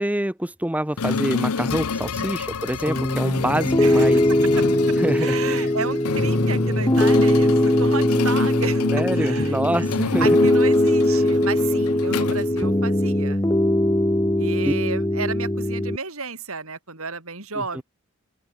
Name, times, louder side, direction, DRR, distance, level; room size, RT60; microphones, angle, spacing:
voice 1, 0.0-4.3 5.0-5.7 8.9-10.3 14.6-14.7 17.7-17.8, right 1 dB, 5° right, 0.9 m, -26 dB
sound 1, 1.0-13.2, left 4 dB, 85° left, 0.8 m, -28 dB
Piano, 2.9-16.0, left 1 dB, 15° left, 1.4 m, -20 dB
voice 2, 5.2-8.9 9.1-9.9 10.2-13.4 14.4-17.8, right 4 dB, 65° right, 4.3 m, -32 dB
open air
head